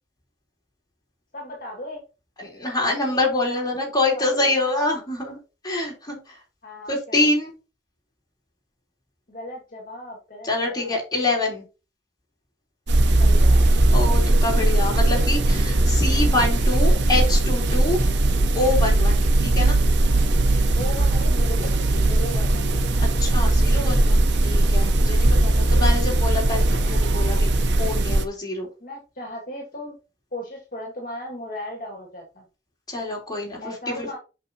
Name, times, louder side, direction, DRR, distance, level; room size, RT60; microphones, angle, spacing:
voice 1, 1.3-2.0 3.4-3.8 4.1-5.0 6.6-7.3 9.3-11.0 13.2-13.7 20.8-22.7 25.8-25.9 28.8-30.0 30.3-32.5 33.6-34.2, left 1 dB, 50° left, 0 dB, 2.0 m, -37 dB
voice 2, 2.4-5.4 5.6-6.4 6.9-7.5 10.4-11.6 13.9-18.0 18.5-19.8 23.0-27.5 27.8-28.7 32.9-34.2, left 2 dB, 25° left, -2 dB, 3.7 m, -26 dB
sound 1, 12.9-28.2, right 2 dB, 70° right, 0.7 m, -19 dB
sound 2, 13.6-14.8 15.2-15.7 16.1-17.3 17.7-18.2 18.6-19.8 20.2-21.4 21.6-24.1, equal, 45° right, 1.1 m, -36 dB
8.3 x 6.1 x 2.9 m, 0.31 s
head